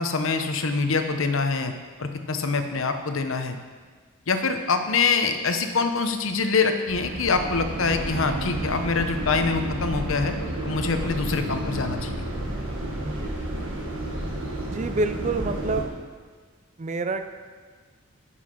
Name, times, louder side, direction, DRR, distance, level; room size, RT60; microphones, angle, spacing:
voice 1, 0.0-1.7 2.0-3.6 4.3-10.3 10.6-12.2, left 4 dB, 65° left, 7 dB, 0.8 m, -25 dB
sound 1, 6.9-15.8, right 1 dB, 65° right, 1.5 m, -31 dB
voice 2, 13.0-13.4 14.7-15.9 16.8-17.3, right 3 dB, 35° right, 8 dB, 0.4 m, -28 dB
9.9 x 5.7 x 5.7 m, 1.5 s
head